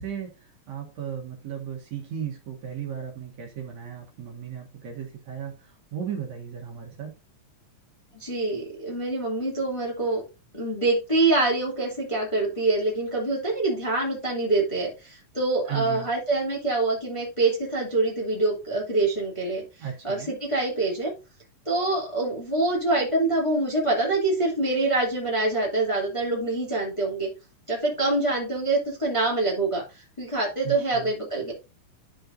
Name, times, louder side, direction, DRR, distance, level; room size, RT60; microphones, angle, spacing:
voice 1, 0.0-7.1 15.7-16.1 19.8-20.3 30.6-31.1, right 8 dB, 60° right, 0 dB, 2.6 m, -35 dB
voice 2, 8.1-10.2 10.5-19.6 20.0-21.1 21.6-27.3 27.7-31.5, right 2 dB, 10° left, -4 dB, 1.9 m, -25 dB
13.0 x 4.4 x 2.6 m, 0.29 s
omnidirectional pair, 3.8 m